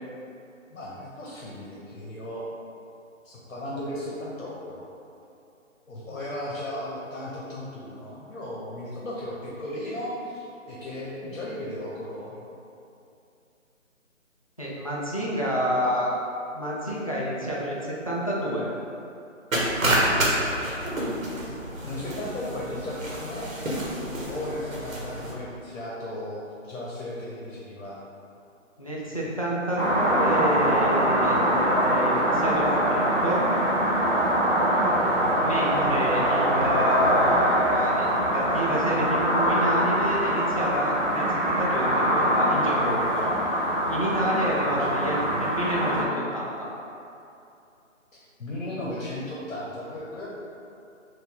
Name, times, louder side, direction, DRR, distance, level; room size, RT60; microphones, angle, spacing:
voice 1, 0.7-2.5 3.2-4.9 5.9-12.5 20.8-21.0 21.4-23.9 24.2-28.0 44.6-45.4 48.4-50.3, left 1 dB, 65° left, -5 dB, 1.1 m, -36 dB
voice 2, 14.6-16.1 16.5-18.7 28.8-33.5 35.4-43.4 43.9-46.7, equal, 30° left, -5 dB, 0.4 m, -29 dB
sound 1, 19.5-25.3, right 1 dB, 85° right, 1.2 m, -28 dB
sound 2, 29.8-46.0, right 1 dB, 35° right, 0.7 m, -23 dB
4.7 x 2.6 x 3.7 m, 2.7 s
figure-of-eight pair, 160°, 39 cm